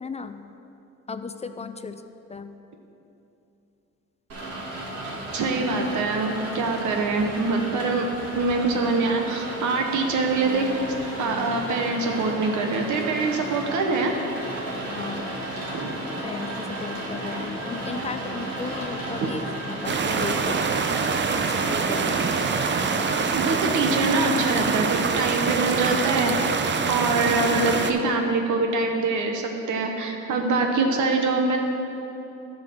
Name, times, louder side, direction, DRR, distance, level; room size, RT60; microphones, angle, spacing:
voice 1, 0.0-0.5 1.1-2.0 2.3-2.5 14.9-15.3 16.1-19.4 19.7-20.7 21.3-22.2, left 5 dB, 20° left, 10 dB, 0.4 m, -35 dB
Rain, 4.3-23.3, right 1 dB, 55° right, 2.5 m, -34 dB
voice 2, 5.3-8.1 8.3-10.7 11.2-14.2 15.7-16.1 19.2-19.3 23.3-31.6, right 3 dB, 75° right, 3 dB, 1.1 m, -24 dB
sound 1, 19.9-27.9, right 5 dB, 40° right, 0.6 m, -25 dB
10.5 x 5.8 x 5.9 m, 2.9 s
cardioid pair, 90°, 30 cm